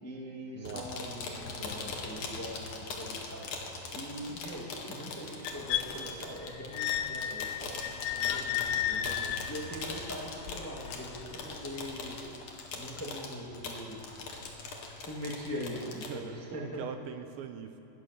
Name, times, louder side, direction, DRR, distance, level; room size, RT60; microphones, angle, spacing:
voice 1, 0.0-3.5 3.9-9.1 9.5-12.2 12.7-14.0 14.9-16.8, equal, 10° left, -3 dB, 0.6 m, -42 dB
voice 2, 0.5-0.9 8.8-9.5 15.9-17.8, right 8 dB, 80° right, 7 dB, 2.7 m, -43 dB
sound 1, 0.6-16.1, left 4 dB, 50° left, 2.6 m, -41 dB
sound 2, 5.5-11.5 12.3-12.4, left 11 dB, 85° left, 3.6 m, -34 dB
22.0 x 17.5 x 7.0 m, 2.8 s
omnidirectional pair, 5.9 m